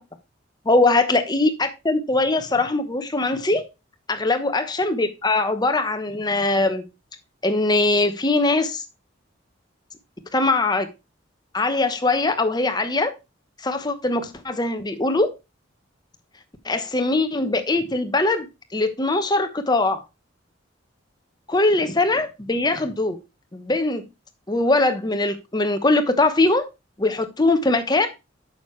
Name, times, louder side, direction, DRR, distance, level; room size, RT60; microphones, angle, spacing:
voice 1, 0.6-3.6 4.1-6.8 7.4-8.8 10.3-10.9 11.5-13.1 13.6-15.3 16.6-18.5 18.7-20.0 21.5-23.2 23.5-24.0 24.5-26.6 27.0-28.1, left 2 dB, 20° left, 1.0 m, -21 dB
9.0 x 6.6 x 3.2 m
head